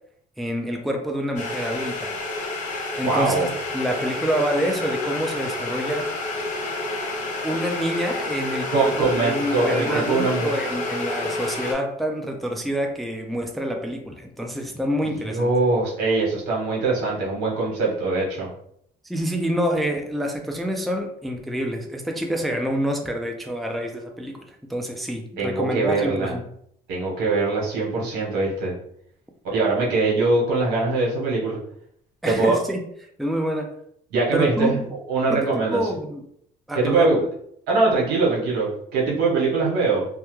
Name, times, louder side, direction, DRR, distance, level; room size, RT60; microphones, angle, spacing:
voice 1, 0.4-2.1 3.0-3.5 3.7-6.1 7.4-15.5 19.0-26.4 32.2-32.8 33.2-33.7 34.3-34.9 35.3-36.2 36.7-37.1, equal, ahead, 2 dB, 0.3 m, -27 dB
sound 1, 1.4-11.7, left 2 dB, 50° left, 0.7 m, -29 dB
voice 2, 3.0-3.5 8.7-10.5 15.0-18.5 25.4-26.4 26.9-28.7 29.5-31.6 32.2-32.6 34.1-34.8 35.1-35.8 36.7-37.2 37.7-40.1, right 3 dB, 85° right, -4 dB, 1.1 m, -22 dB
2.2 x 2.1 x 3.0 m, 0.70 s
cardioid pair, 110°, 17 cm